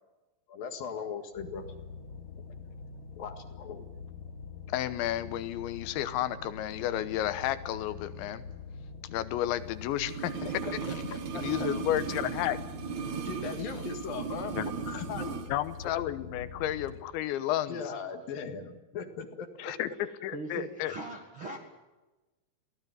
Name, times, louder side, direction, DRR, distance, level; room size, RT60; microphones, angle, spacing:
voice 1, 0.5-1.7 3.2-3.8 10.6-12.0 13.2-15.4 17.7-19.7, left 6 dB, 60° left, 6 dB, 3.1 m, -39 dB
sound 1, 1.3-16.9, left 5 dB, 40° left, 4.1 m, -45 dB
voice 2, 4.7-8.4 9.1-10.5 10.7-10.8 11.3-12.6 14.5-14.7 15.5-17.8 19.6-20.9, left 13 dB, 85° left, 13 dB, 3.3 m, -32 dB
sound 2, 10.0-15.5 15.8-15.9, right 7 dB, 60° right, 2.0 m, -37 dB
voice 3, 20.3-21.6, right 2 dB, 45° right, 3 dB, 1.8 m, -39 dB
23.0 x 17.5 x 9.4 m, 1.1 s
omnidirectional pair, 5.3 m